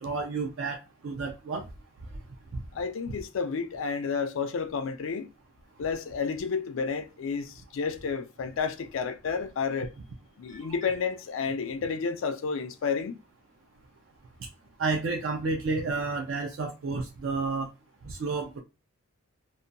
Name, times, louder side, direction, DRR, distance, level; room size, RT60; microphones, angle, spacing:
voice 1, 0.0-0.8 1.0-1.6 3.1-3.2 14.8-17.7 18.0-18.6, right 3 dB, 60° right, 0.4 m, -30 dB
voice 2, 2.7-5.3 5.8-9.9 10.4-13.2, left 5 dB, 65° left, 0.3 m, -31 dB
2.6 x 2.2 x 2.5 m
head